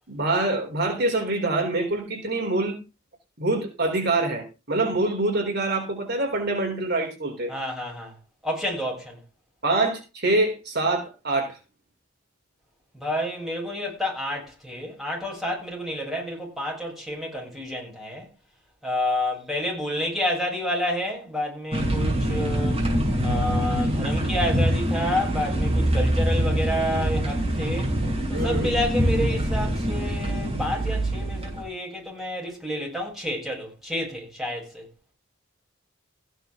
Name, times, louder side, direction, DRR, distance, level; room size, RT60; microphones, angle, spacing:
voice 1, 0.1-2.8 3.4-7.5 9.6-11.6 28.3-28.7, right 2 dB, 55° right, 3.8 m, -25 dB
voice 2, 7.5-8.1 8.4-9.2 12.9-18.3 18.8-22.8 23.2-27.9 28.3-34.8, left 1 dB, ahead, 7.6 m, -29 dB
sound 1, 21.7-31.6, right 1 dB, 30° right, 6.4 m, -24 dB
15.5 x 10.0 x 3.8 m
head